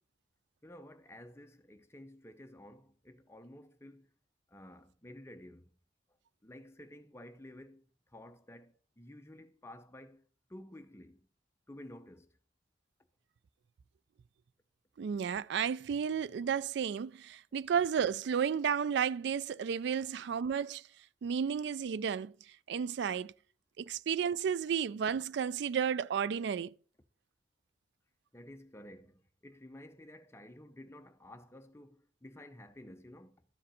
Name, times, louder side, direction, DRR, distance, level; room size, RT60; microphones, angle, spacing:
voice 1, 0.6-4.1 4.5-5.7 6.4-10.2 10.5-11.3 11.7-12.3 28.3-33.4, left 1 dB, 15° left, 0.7 m, -52 dB
voice 2, 15.0-20.8 21.2-22.3 22.7-23.3 23.8-26.7, right 7 dB, 65° right, 0.3 m, -32 dB
12.5 x 5.1 x 4.2 m
head